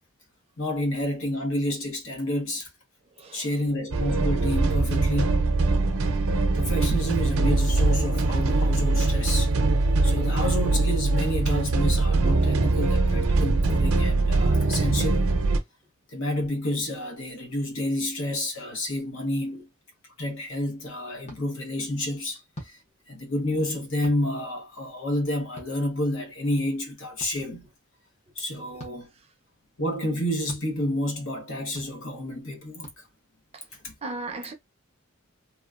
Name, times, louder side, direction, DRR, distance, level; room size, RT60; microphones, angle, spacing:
voice 1, 0.6-2.7 3.3-5.4 6.5-15.3 16.1-19.7 20.2-22.8 23.1-27.7 28.4-29.1 29.8-32.9 33.8-33.9, left 1 dB, 65° left, 1.1 m, -29 dB
voice 2, 3.2-3.5 19.5-19.6 33.5-33.7 34.0-34.5, right 2 dB, 30° right, 0.6 m, -37 dB
sound 1, 3.9-15.6, right 2 dB, 75° right, 0.6 m, -22 dB
sound 2, 21.2-21.4 22.5-22.8 24.0-24.2 25.6-25.7 27.2-27.3 28.8-29.0 30.5-30.6 31.7-31.9 32.8-33.0, left 1 dB, 30° left, 0.9 m, -42 dB
3.0 x 2.2 x 2.4 m
head